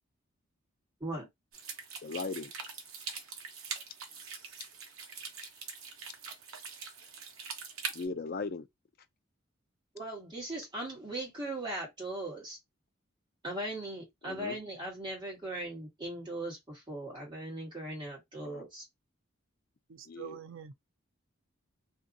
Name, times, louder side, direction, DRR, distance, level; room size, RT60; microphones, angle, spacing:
sound 1, 1.5-8.0, right 5 dB, 85° right, 0.8 m, -43 dB
voice 1, 2.0-2.5 7.9-8.6 14.2-14.6 18.4-18.6 20.1-20.4, left 4 dB, 45° left, 0.4 m, -38 dB
voice 2, 9.9-12.6 13.4-18.8, right 1 dB, 20° right, 1.5 m, -39 dB
voice 3, 19.9-20.7, right 9 dB, 65° right, 0.4 m, -45 dB
2.7 x 2.6 x 2.5 m
head